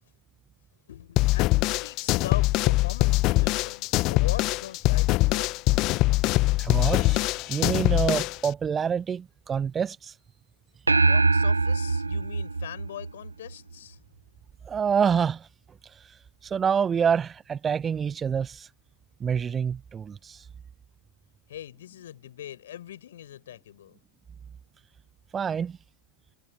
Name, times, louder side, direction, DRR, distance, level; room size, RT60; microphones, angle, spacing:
voice 1, 0.9-5.6 10.9-14.0 21.5-24.0, left 11 dB, 60° left, 4.9 m, -41 dB
sound 1, 1.2-8.5, left 20 dB, 40° left, 1.0 m, -23 dB
voice 2, 6.6-10.1 14.6-15.5 16.4-18.7 19.2-20.4 25.3-25.8, right 7 dB, 20° right, 1.3 m, -27 dB
sound 2, 10.9-13.5, right 3 dB, 80° right, 0.4 m, -23 dB
figure-of-eight pair, 90°, 0 cm